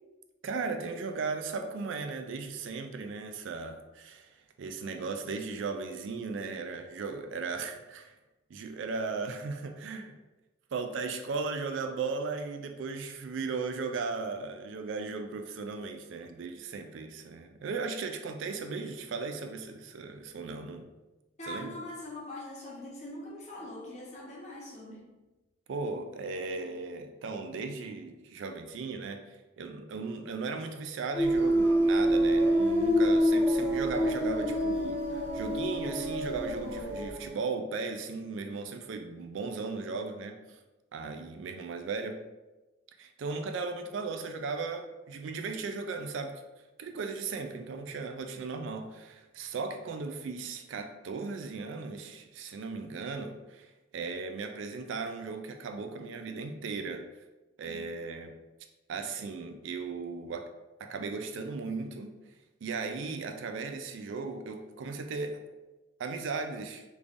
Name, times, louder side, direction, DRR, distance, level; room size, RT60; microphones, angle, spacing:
voice 1, 0.4-8.1 8.5-10.1 10.7-20.9 21.4-21.8 25.7-40.6 40.9-42.2 43.0-46.3 46.8-57.0 57.6-58.3 58.9-60.5 60.8-62.1 62.6-65.4 66.0-66.8, right 4 dB, 70° right, 6 dB, 0.3 m, -37 dB
voice 2, 21.4-25.1 57.6-57.8, left 1 dB, 35° left, -4 dB, 0.8 m, -42 dB
sound 1, 31.1-37.3, equal, 10° right, 1.2 m, -26 dB
3.4 x 3.3 x 2.5 m, 1.1 s
head